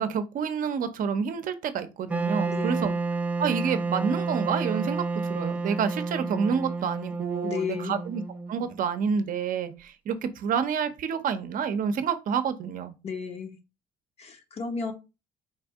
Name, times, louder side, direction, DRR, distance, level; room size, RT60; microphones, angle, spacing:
voice 1, 0.0-2.9 3.4-8.2 8.5-12.9, right 6 dB, 55° right, 0.6 m, -28 dB
Wind instrument woodwind instrument, 2.1-9.1, right 3 dB, 10° right, 0.4 m, -30 dB
voice 2, 2.5-3.0 7.4-8.0 13.0-13.6 14.2-14.9, left 5 dB, 40° left, 0.8 m, -33 dB
4.2 x 2.6 x 3.5 m
cardioid pair, 110°, 17 cm